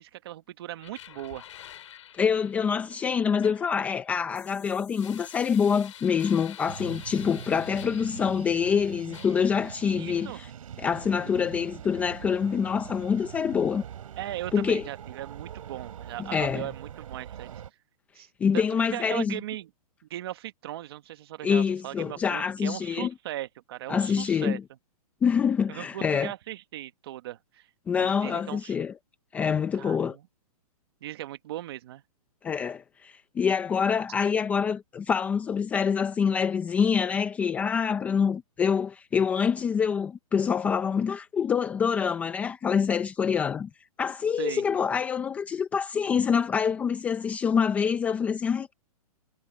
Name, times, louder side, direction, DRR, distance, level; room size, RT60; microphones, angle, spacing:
voice 1, 0.0-1.4 9.8-10.4 14.2-17.6 18.1-18.3 18.5-18.7 18.9-19.7 20.1-24.6 25.7-28.9 29.7-30.2 31.0-32.0 44.4-44.7, right 14 dB, 40° right, 1.5 m, -38 dB
sound 1, 0.8-8.8 9.1-10.3, left 11 dB, 55° left, 6.1 m, -48 dB
voice 2, 2.2-10.5 10.8-13.8 14.5-14.8 16.2-16.6 18.4-19.4 21.4-23.1 23.9-24.6 25.2-26.3 27.9-28.9 29.3-30.2 32.4-43.7 44.0-48.7, left 6 dB, 5° left, 0.6 m, -26 dB
sound 2, 6.7-17.7, right 9 dB, 60° right, 6.0 m, -43 dB
hypercardioid pair, 165°, 19 cm